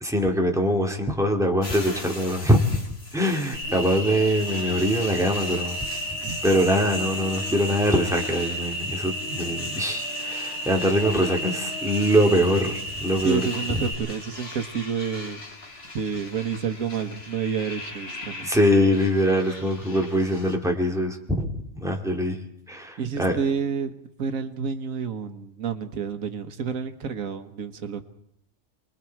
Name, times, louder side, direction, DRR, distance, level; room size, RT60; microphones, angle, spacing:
voice 1, 0.0-2.8 3.1-5.8 6.4-13.4 13.7-13.8 18.4-22.4 22.7-23.4, equal, ahead, 2 dB, 2.2 m, -23 dB
sound 1, 1.6-20.6, left 2 dB, 50° left, 3.0 m, -40 dB
Cricket, 3.5-13.9, equal, 35° right, 7.3 m, -32 dB
voice 2, 13.2-15.4 15.9-18.5 23.0-23.9 24.2-28.0, right 6 dB, 90° right, 9 dB, 1.6 m, -29 dB
28.5 x 21.0 x 4.6 m, 0.72 s
omnidirectional pair, 1.4 m